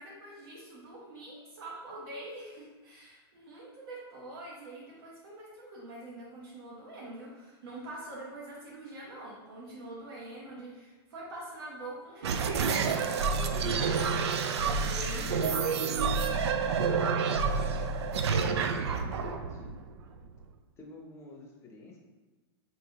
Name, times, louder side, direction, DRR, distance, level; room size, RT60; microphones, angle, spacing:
voice 1, 0.0-14.1 14.6-15.6 15.8-16.2, right 1 dB, 65° right, -4 dB, 0.9 m, -45 dB
sound 1, 12.2-20.4, right 5 dB, 90° right, 0.4 m, -29 dB
voice 2, 15.2-16.4 19.0-19.7 20.8-22.0, left 2 dB, 20° left, 0 dB, 0.6 m, -49 dB
4.5 x 3.0 x 2.8 m, 1.3 s
hypercardioid pair, 145°, 14 cm